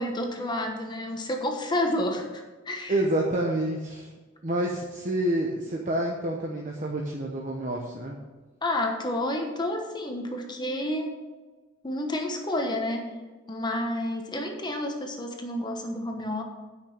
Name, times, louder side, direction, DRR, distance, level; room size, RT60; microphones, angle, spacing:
voice 1, 0.0-2.9 8.6-11.1 11.8-13.1 13.5-16.4, left 1 dB, 20° left, 3 dB, 1.1 m, -30 dB
voice 2, 2.9-4.1 4.4-8.1, right 1 dB, 40° right, 0 dB, 0.9 m, -28 dB
8.9 x 6.1 x 6.8 m, 1.3 s
head